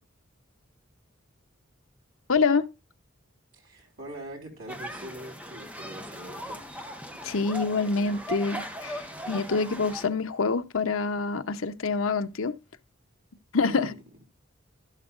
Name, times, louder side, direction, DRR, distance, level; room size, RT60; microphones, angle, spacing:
voice 1, 2.3-2.7 7.2-12.6 13.5-13.9, left 4 dB, 80° left, 0.8 m, -26 dB
voice 2, 3.5-6.6 13.7-13.9, right 1 dB, 85° right, 4.1 m, -43 dB
sound 1, 4.7-10.0, equal, 5° right, 0.9 m, -39 dB
12.5 x 11.0 x 2.5 m
head